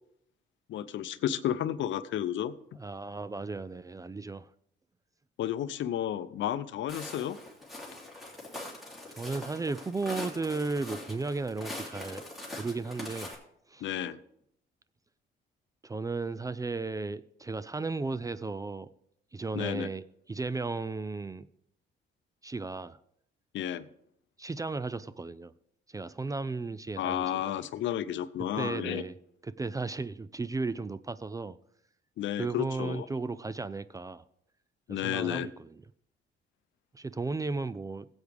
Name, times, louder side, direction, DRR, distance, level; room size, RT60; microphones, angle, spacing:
voice 1, 0.7-2.5 5.4-7.4 13.8-14.2 19.5-19.9 23.5-23.9 27.0-29.0 32.2-33.0 34.9-35.5, left 11 dB, 70° left, 0.6 m, -32 dB
voice 2, 2.8-4.5 9.1-12.2 12.6-13.4 13.7-13.9 15.8-18.9 19.3-21.5 22.4-23.0 24.4-25.5 25.9-27.6 28.5-29.2 29.4-31.6 32.4-34.2 34.9-35.8 36.9-38.1, right 3 dB, 15° right, 0.3 m, -35 dB
Walk footsteps, 6.9-13.3, left 2 dB, ahead, 3.2 m, -42 dB
16.0 x 8.1 x 3.5 m
cardioid pair, 90°, 20 cm